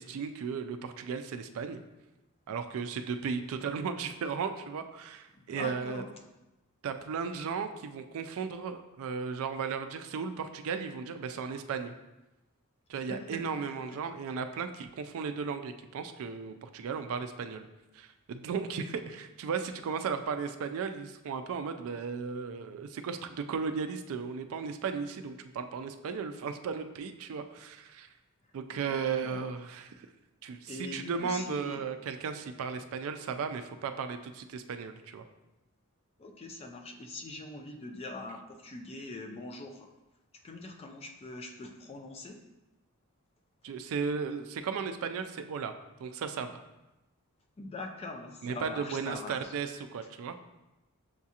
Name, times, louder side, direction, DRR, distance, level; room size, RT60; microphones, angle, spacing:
voice 1, 0.0-1.8 2.5-6.0 6.8-11.9 12.9-17.6 17.9-28.1 28.5-30.1 30.4-35.2 43.6-45.7 46.0-46.6 48.4-50.4, right 5 dB, 65° right, 8 dB, 0.3 m, -35 dB
voice 2, 5.3-6.1 12.9-14.0 28.7-29.5 30.7-31.9 36.2-39.9 40.4-42.4 47.6-49.5, left 2 dB, 25° left, 3 dB, 0.4 m, -43 dB
7.1 x 2.4 x 2.8 m, 1.0 s
head